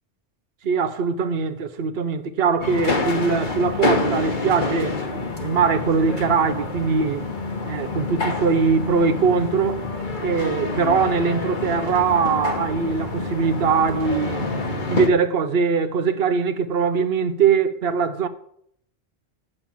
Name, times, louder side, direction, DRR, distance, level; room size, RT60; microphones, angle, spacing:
voice 1, 0.6-5.0 5.4-7.3 7.6-9.8 10.2-14.5 14.9-18.3, right 5 dB, 65° right, 0.9 m, -21 dB
sound 1, 2.6-15.1, left 3 dB, 45° left, 1.3 m, -27 dB
7.1 x 6.5 x 7.4 m
omnidirectional pair, 1.1 m